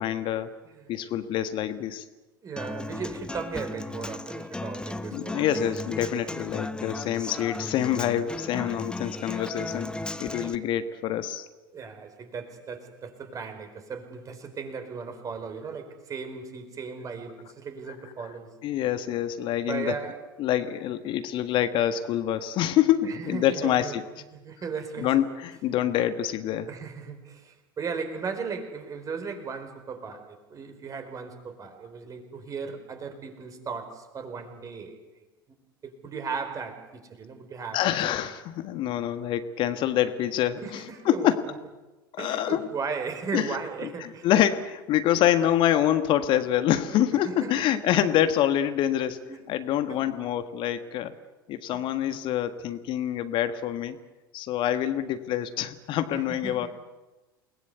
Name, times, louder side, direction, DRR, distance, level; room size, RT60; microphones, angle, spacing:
voice 1, 0.0-0.5 0.9-2.0 5.1-9.9 10.2-11.5 18.6-19.9 20.4-24.0 25.0-26.7 37.7-40.6 41.0-41.3 42.2-42.6 43.3-43.5 44.0-51.1 51.5-54.0 54.3-56.7, left 11 dB, 45° left, 10 dB, 1.6 m, -26 dB
voice 2, 2.4-5.4 10.4-10.5 11.7-18.6 19.6-20.2 23.0-24.0 24.3-25.1 26.7-35.0 35.8-38.0 40.6-41.3 42.2-44.3 47.1-47.8 49.3-49.4 49.9-50.0 51.7-52.2 56.1-56.7, right 5 dB, 30° right, 7 dB, 4.7 m, -36 dB
Human voice / Acoustic guitar, 2.6-10.5, left 2 dB, 5° left, 1.3 m, -36 dB
29.0 x 20.5 x 8.2 m, 1.1 s
figure-of-eight pair, 75°, 12 cm